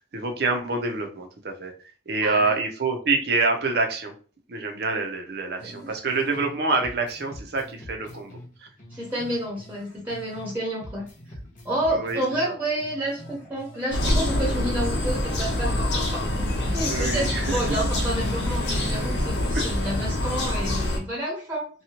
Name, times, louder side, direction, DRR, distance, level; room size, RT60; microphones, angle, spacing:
voice 1, 0.1-1.7 2.1-4.1 4.5-8.7 11.9-12.5 16.9-17.8 19.5-19.7, right 3 dB, 65° right, 4 dB, 0.6 m, -27 dB
voice 2, 2.2-2.6 5.6-5.8 8.9-11.1 11.6-16.2 16.7-21.7, right 1 dB, 10° right, -4 dB, 0.9 m, -30 dB
sound 1, 5.6-6.5 6.8-10.5 10.8-14.5 14.8-15.6, equal, 45° left, 0.8 m, -44 dB
sound 2, 13.9-21.0, left 1 dB, 75° left, 0.9 m, -25 dB
2.8 x 2.3 x 2.8 m, 0.38 s
head